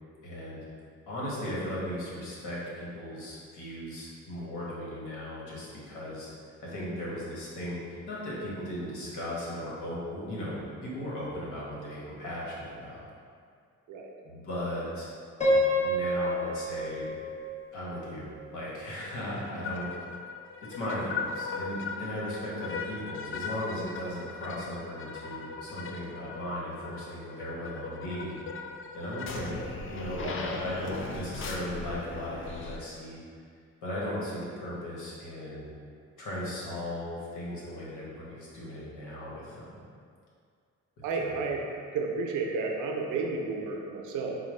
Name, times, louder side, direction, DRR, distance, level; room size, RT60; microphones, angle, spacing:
voice 1, 0.2-0.6 1.1-6.3 6.6-13.0 14.2-15.1 15.7-17.2 17.7-19.9 20.6-28.4 28.9-33.2 33.8-35.7 36.2-39.8 41.2-41.3, equal, 80° left, -6 dB, 1.2 m, -37 dB
Piano, 15.4-18.4, equal, 20° left, 0.8 m, -28 dB
sound 1, 19.0-32.8, left 4 dB, 45° left, 0.4 m, -39 dB
voice 2, 41.0-41.6 41.9-44.4, right 4 dB, 90° right, 1 dB, 0.6 m, -32 dB
4.8 x 2.2 x 3.2 m, 2.2 s
cardioid pair, 90°, 30 cm